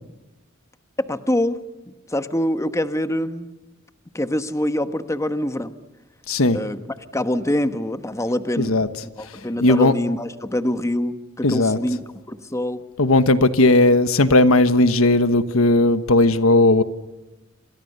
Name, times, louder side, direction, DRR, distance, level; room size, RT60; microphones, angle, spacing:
voice 1, 1.1-1.6 2.1-3.5 4.1-5.7 6.5-6.8 7.1-8.8 9.2-12.0 12.3-12.8, left 1 dB, 15° left, 1.2 m, -24 dB
voice 2, 6.3-6.6 8.6-8.9 9.6-9.9 11.4-11.8 13.0-16.8, left 2 dB, 85° left, 1.4 m, -16 dB
28.5 x 26.5 x 6.8 m
head